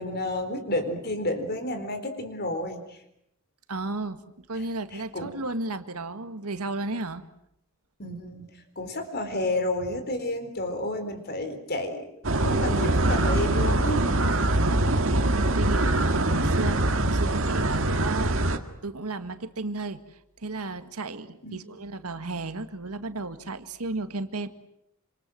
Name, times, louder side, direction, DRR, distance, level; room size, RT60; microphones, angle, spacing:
voice 1, 0.0-3.0 4.5-4.6 4.9-5.4 8.0-8.5 8.8-12.1 12.4-14.1 21.4-21.9, left 1 dB, 45° left, 8 dB, 4.1 m, -31 dB
voice 2, 3.7-7.2 14.5-15.1 15.6-24.5, right 2 dB, 90° right, 9 dB, 1.9 m, -34 dB
sound 1, 12.2-18.6, right 1 dB, 65° right, 2.0 m, -23 dB
27.0 x 26.0 x 7.7 m, 0.79 s
head